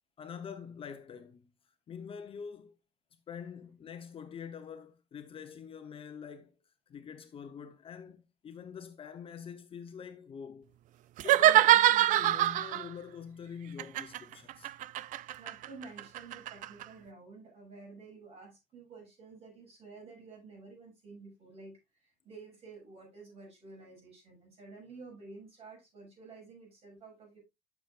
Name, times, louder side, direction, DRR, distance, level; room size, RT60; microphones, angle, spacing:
voice 1, 0.2-1.5 1.9-2.7 3.3-6.5 6.9-10.7 11.2-14.7, left 7 dB, 35° left, 0.9 m, -45 dB
sound 1, 11.2-12.9 13.8-16.8, right 13 dB, 55° right, 0.4 m, -24 dB
voice 2, 15.4-27.4, right 3 dB, 40° right, 7.1 m, -51 dB
11.5 x 7.0 x 2.5 m
cardioid pair, 145°, 15 cm